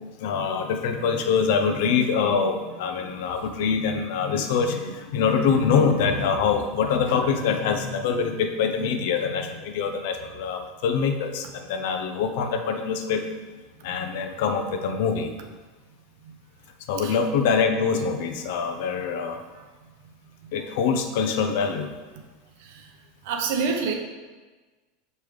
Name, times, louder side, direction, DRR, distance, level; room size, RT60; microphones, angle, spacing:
voice 1, 0.2-13.2 13.8-15.3 16.9-19.4 20.5-21.9, left 6 dB, 65° left, 6 dB, 0.7 m, -24 dB
voice 2, 23.2-23.9, right 5 dB, 65° right, 4 dB, 0.9 m, -26 dB
6.3 x 5.4 x 3.3 m, 1.3 s
supercardioid pair, 165°, 0 cm